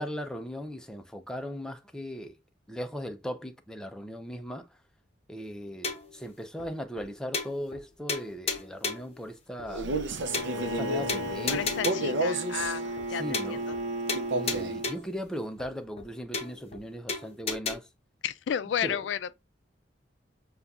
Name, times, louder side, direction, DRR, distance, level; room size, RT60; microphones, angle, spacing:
voice 1, 0.0-2.4 2.7-4.7 5.3-9.9 10.5-11.6 12.0-12.3 13.1-13.6 14.3-17.9 18.8-19.0, equal, 5° left, 0.5 m, -38 dB
sound 1, 5.8-6.2 6.6-6.7 7.0-7.1 7.3-7.8 8.1-9.1 9.6-9.7 10.0-10.1 10.3-10.8 11.1-12.2 12.6-12.7 13.0-13.1 13.3-13.8 14.1-15.2 15.6-15.7 16.0-16.1 16.3-16.8 17.1-17.8, left 4 dB, 35° left, 0.8 m, -34 dB
Male speech man speaking, 9.7-12.8 14.1-14.8, right 2 dB, 70° right, 0.5 m, -31 dB
Bowed string instrument, 10.2-15.0, right 1 dB, 35° right, 1.1 m, -35 dB
voice 2, 11.5-13.2 13.5-13.6 18.2-19.3, left 8 dB, 70° left, 0.3 m, -32 dB
6.8 x 2.3 x 2.3 m
head